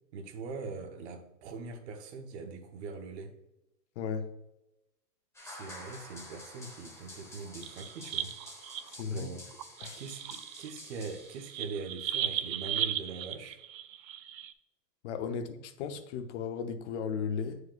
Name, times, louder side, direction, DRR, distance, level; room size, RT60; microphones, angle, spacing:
voice 1, 0.1-3.4 5.4-8.3 9.1-9.4 10.0-13.6 15.3-15.4 15.8-15.9, right 4 dB, 45° right, 1.1 m, -42 dB
voice 2, 4.0-4.3 8.9-9.3 9.8-10.0 15.0-17.6, left 6 dB, 45° left, 0.8 m, -35 dB
sound 1, 5.3-11.7, left 1 dB, 5° left, 1.1 m, -50 dB
sound 2, 7.5-9.0 9.5-14.5, right 10 dB, 85° right, 0.6 m, -37 dB
9.1 x 4.8 x 2.4 m
hypercardioid pair, 135°, 49 cm